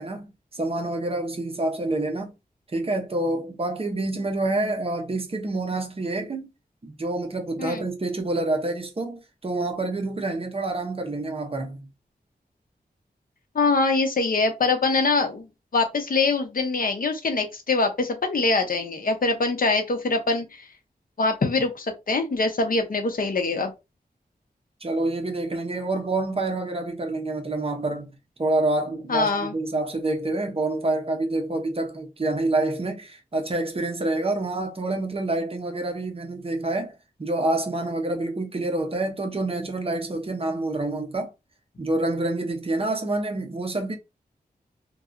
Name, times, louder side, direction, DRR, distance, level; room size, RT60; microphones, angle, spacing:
voice 1, 0.0-2.3 2.7-6.5 6.8-11.9 24.8-41.3 41.8-43.9, right 2 dB, 35° right, 0.7 m, -27 dB
voice 2, 13.5-15.5 15.7-20.7 21.2-23.7 29.1-29.6, left 3 dB, 60° left, 0.7 m, -23 dB
2.7 x 2.3 x 2.5 m
wide cardioid pair, 75°, 16 cm